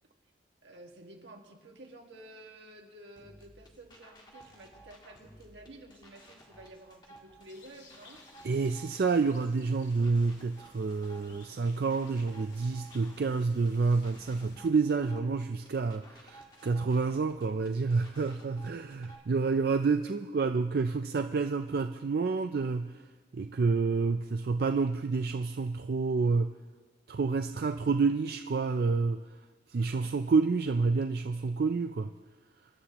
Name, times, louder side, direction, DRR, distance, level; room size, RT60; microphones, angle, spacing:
voice 1, 0.6-8.2, right 1 dB, 80° right, 1 dB, 1.8 m, -51 dB
sound 1, 3.2-19.2, right 1 dB, 25° left, 1.6 m, -56 dB
sound 2, 7.5-14.6, left 3 dB, 85° left, 2.1 m, -57 dB
voice 2, 8.4-23.0 23.3-26.5 27.1-29.2 29.7-32.1, right 4 dB, 55° right, 7 dB, 0.4 m, -29 dB
25.0 x 11.0 x 3.0 m, 1.3 s
head